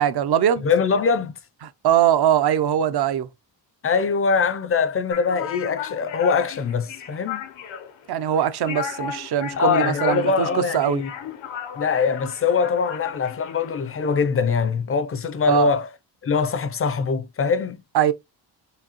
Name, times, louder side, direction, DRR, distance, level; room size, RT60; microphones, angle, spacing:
voice 1, 0.0-0.6 1.8-3.3 8.1-11.0 15.5-15.7 17.9-18.1, right 10 dB, 60° right, 0.6 m, -21 dB
voice 2, 0.6-1.4 3.8-7.5 9.6-11.1 11.8-15.9 16.2-17.8, left 5 dB, 30° left, 0.4 m, -22 dB
sound 1, 5.1-14.3, left 9 dB, 85° left, 0.8 m, -35 dB
4.9 x 2.7 x 2.9 m
wide cardioid pair, 130°, 44 cm